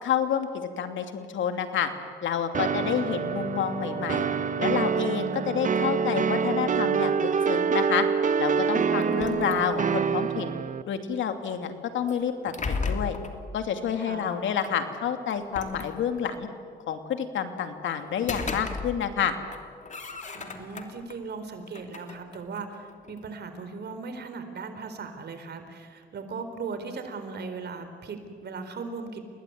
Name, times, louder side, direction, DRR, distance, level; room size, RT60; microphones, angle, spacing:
voice 1, 0.0-1.9 2.2-4.3 4.6-8.0 8.4-10.5 10.9-13.2 13.5-16.5 16.9-19.4, left 8 dB, 70° left, 7 dB, 2.8 m, -29 dB
sound 1, 2.5-10.8, right 6 dB, 40° right, 1.0 m, -26 dB
voice 2, 8.8-9.4 14.0-14.3 20.3-29.2, right 4 dB, 55° right, 8 dB, 4.1 m, -38 dB
sound 2, 9.0-10.1 12.1-13.4 14.6-14.7 15.3-16.4 18.0-19.2 19.5-21.2 21.6-23.3, left 4 dB, 35° left, 2.9 m, -36 dB
29.5 x 20.0 x 9.6 m, 2.2 s
cardioid pair, 90°, 20 cm